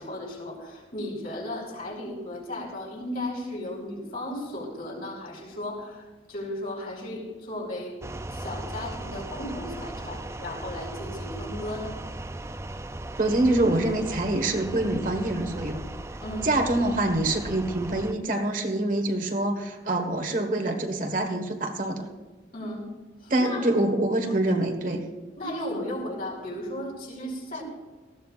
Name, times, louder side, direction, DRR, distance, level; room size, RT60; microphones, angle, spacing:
voice 1, 0.0-8.0 8.3-11.9 16.2-16.5 22.5-22.9 23.2-23.7 25.3-27.6, left 1 dB, 50° left, -2 dB, 4.9 m, -35 dB
sound 1, 8.0-18.1, right 1 dB, 15° right, 0.4 m, -37 dB
voice 2, 13.2-15.8 16.4-22.1 23.3-25.0, right 1 dB, 45° right, 4 dB, 1.5 m, -25 dB
19.5 x 15.5 x 2.5 m, 1.3 s
head